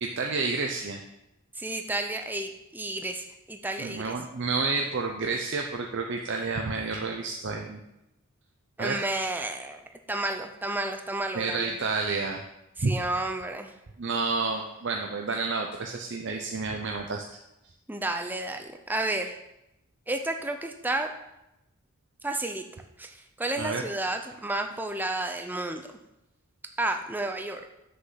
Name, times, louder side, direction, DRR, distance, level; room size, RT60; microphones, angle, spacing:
voice 1, 0.0-1.0 3.8-7.8 8.8-9.0 11.3-12.4 12.8-12.9 14.0-17.2 23.6-23.8, right 4 dB, 55° right, 2 dB, 0.7 m, -30 dB
voice 2, 1.6-4.1 8.8-9.8 10.1-11.6 12.8-13.7 17.9-19.4 20.1-21.1 22.2-22.6 23.0-25.8 26.8-27.6, right 2 dB, 10° right, 5 dB, 0.5 m, -31 dB
7.7 x 6.6 x 5.7 m, 0.88 s
head